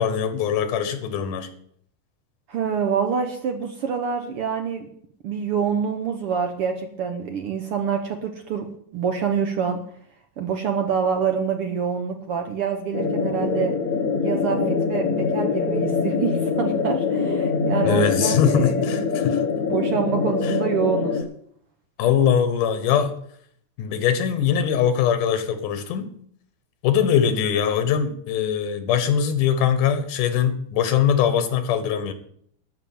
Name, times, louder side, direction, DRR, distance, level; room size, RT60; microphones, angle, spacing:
voice 1, 0.0-1.5 17.8-19.4 20.4-20.5 22.0-23.1 23.8-26.1 26.8-32.1, left 8 dB, 90° left, 9 dB, 2.9 m, -22 dB
voice 2, 2.5-4.9 5.2-9.8 10.4-13.7 14.2-19.0 19.7-21.2, right 7 dB, 65° right, 5 dB, 1.5 m, -26 dB
sound 1, 12.9-21.2, left 5 dB, 65° left, 0.9 m, -24 dB
12.5 x 5.9 x 9.3 m, 0.65 s
omnidirectional pair, 3.6 m